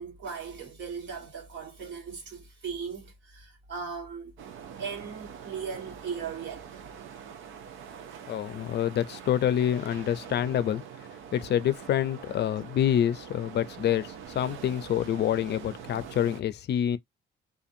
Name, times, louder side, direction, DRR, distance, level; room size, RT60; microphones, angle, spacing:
voice 1, 0.0-4.3 4.8-6.8, right 6 dB, 70° right, 1.5 m, -38 dB
sound 1, 4.4-16.4, right 8 dB, 85° right, 0.7 m, -44 dB
voice 2, 8.3-10.8 11.3-17.0, left 10 dB, 60° left, 0.5 m, -27 dB
2.5 x 2.5 x 2.5 m
cardioid pair, 90°, 20 cm